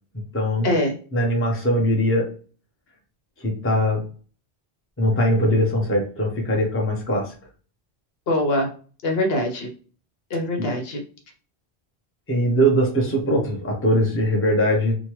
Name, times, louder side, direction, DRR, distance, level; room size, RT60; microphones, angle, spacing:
voice 1, 0.3-0.7 1.1-2.3 3.4-4.0 5.0-7.3 10.6-10.7 12.3-15.0, equal, 15° left, 0 dB, 0.6 m, -21 dB
voice 2, 8.3-8.7 9.0-9.7 10.3-11.0, left 1 dB, 75° left, 3 dB, 1.0 m, -23 dB
3.1 x 2.2 x 3.0 m, 0.40 s
omnidirectional pair, 1.1 m